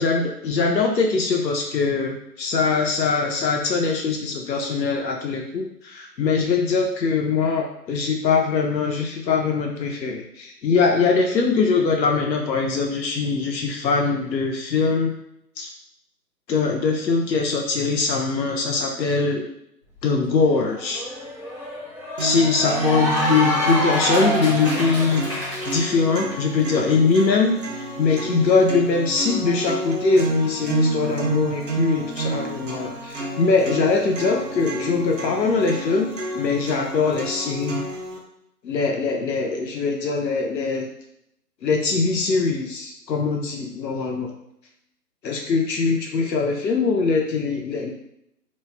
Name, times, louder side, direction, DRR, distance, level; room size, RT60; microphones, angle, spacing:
voice 1, 0.0-15.1 15.6-15.7 16.5-19.5 20.0-21.0 22.2-37.8 38.6-40.9 41.6-44.3 45.2-47.9, left 4 dB, 80° left, 1 dB, 0.7 m, -22 dB
Cheering / Applause, 19.9-20.0 20.3-25.8, left 1 dB, 20° left, 0.5 m, -26 dB
sound 1, 22.2-38.2, right 3 dB, 50° right, 0.6 m, -30 dB
3.0 x 2.0 x 3.4 m, 0.79 s
figure-of-eight pair, 145°, 50 cm